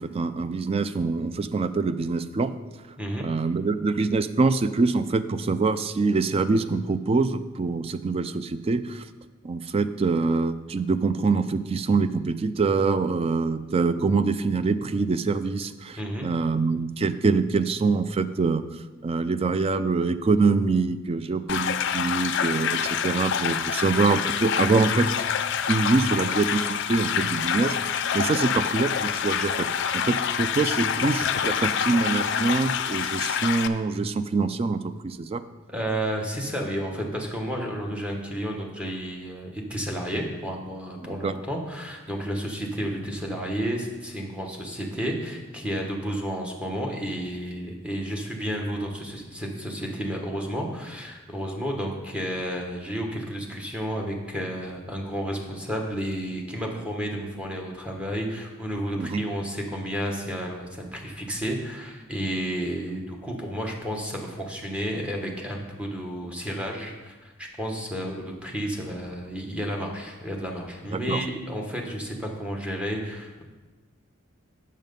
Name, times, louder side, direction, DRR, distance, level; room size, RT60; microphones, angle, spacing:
voice 1, 0.0-2.5 3.2-9.0 9.4-18.6 19.0-25.1 25.7-29.7 29.9-35.4 41.2-41.3 59.0-59.2 70.9-71.2, right 4 dB, 30° right, 12 dB, 0.3 m, -25 dB
voice 2, 3.0-3.3 16.0-16.3 26.0-26.2 30.8-31.0 35.7-73.4, equal, 5° right, 0 dB, 1.1 m, -31 dB
sound 1, 21.5-33.7, left 8 dB, 60° left, 0.4 m, -26 dB
7.4 x 6.5 x 5.3 m, 1.3 s
head